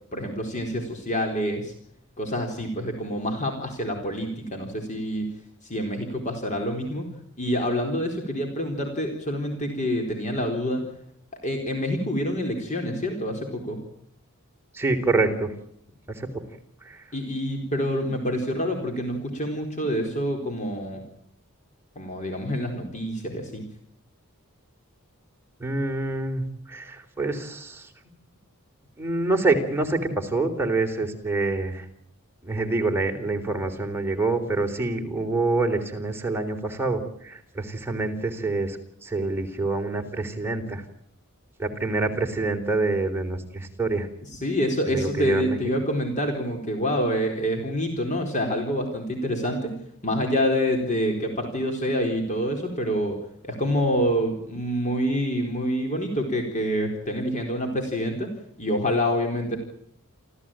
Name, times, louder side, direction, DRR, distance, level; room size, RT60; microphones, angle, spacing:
voice 1, 0.1-1.7 2.2-5.3 5.6-7.1 7.4-10.9 11.4-13.8 17.1-21.0 22.0-23.6 44.3-53.2 53.4-58.3 58.6-59.6, equal, 35° left, 4 dB, 4.1 m, -27 dB
voice 2, 14.7-15.5 16.1-16.3 16.8-17.0 25.6-27.9 29.0-31.9 32.4-38.8 39.0-40.8 41.6-44.1 44.9-45.6, right 3 dB, 10° right, 3 dB, 3.7 m, -26 dB
28.5 x 14.5 x 8.9 m, 0.68 s
head